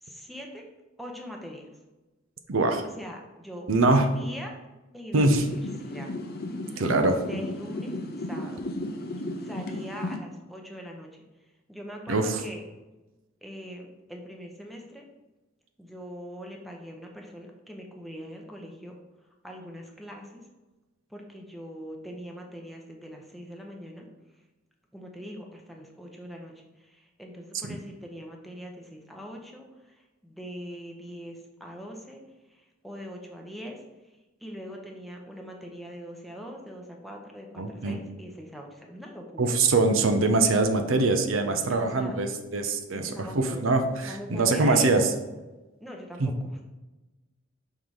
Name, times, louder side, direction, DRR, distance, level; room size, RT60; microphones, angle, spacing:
voice 1, 0.0-0.6 1.0-1.7 3.0-4.5 4.9-6.1 7.3-8.7 9.2-11.1 11.7-12.6 13.4-15.0 15.8-18.9 19.4-20.4 21.1-24.1 24.9-32.2 32.5-33.8 34.4-39.5 41.5-42.2 42.9-43.6 44.1-45.1 45.8-46.5, equal, ahead, 0 dB, 0.8 m, -42 dB
voice 2, 2.5-2.8 3.7-4.1 5.1-5.5 6.7-7.2 12.1-12.4 27.6-27.8 37.6-38.0 39.4-45.1 46.2-46.3, right 3 dB, 80° right, 6 dB, 0.7 m, -23 dB
sound 1, 5.2-10.2, left 1 dB, 50° left, 0.6 m, -34 dB
5.5 x 3.8 x 4.7 m, 1.1 s
head